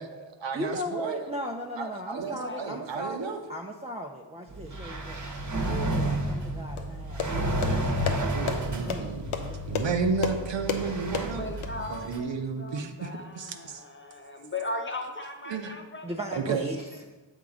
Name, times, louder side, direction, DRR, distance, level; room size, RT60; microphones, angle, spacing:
voice 1, 0.0-1.2 1.8-3.4 8.3-9.3 9.7-11.4 11.9-13.8 15.5-15.8 16.3-16.7, right 5 dB, 65° right, 6 dB, 0.7 m, -32 dB
voice 2, 0.5-7.8 8.8-9.9 16.0-16.9, equal, 15° right, 1 dB, 0.4 m, -37 dB
voice 3, 2.2-2.8 11.3-16.0 16.3-16.4 16.7-16.8, left 2 dB, 25° left, 3 dB, 0.8 m, -38 dB
sound 1, 4.5-12.2, right 1 dB, 40° right, 1.0 m, -31 dB
sound 2, 6.8-11.7, left 6 dB, 90° left, 0.6 m, -34 dB
7.1 x 3.6 x 4.9 m, 1.2 s
cardioid pair, 45°, 48 cm